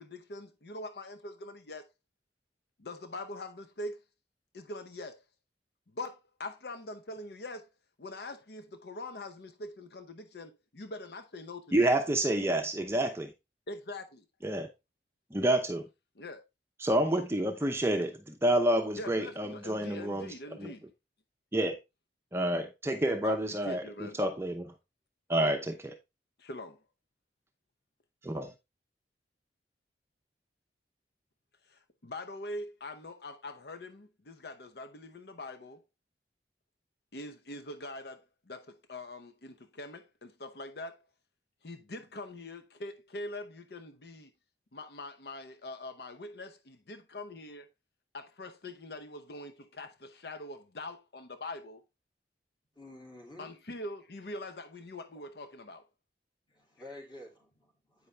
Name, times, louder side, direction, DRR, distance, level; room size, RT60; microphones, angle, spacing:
voice 1, 0.0-1.8 2.8-4.0 4.5-5.2 5.9-7.7 8.0-11.9 13.7-14.2 16.2-16.4 18.9-20.9 23.2-24.2 26.4-26.8 31.7-35.8 37.1-41.1 41.6-44.3 44.7-47.7 48.1-51.8 53.4-55.8, left 2 dB, 65° left, 0.7 m, -43 dB
voice 2, 11.7-13.3 14.4-14.7 15.3-15.8 16.8-20.7 21.5-21.8 22.3-24.7 25.3-25.9 28.2-28.5, right 1 dB, 15° right, 0.7 m, -29 dB
voice 3, 52.8-53.5 56.5-58.1, left 1 dB, 25° left, 2.7 m, -50 dB
8.7 x 5.4 x 3.3 m
head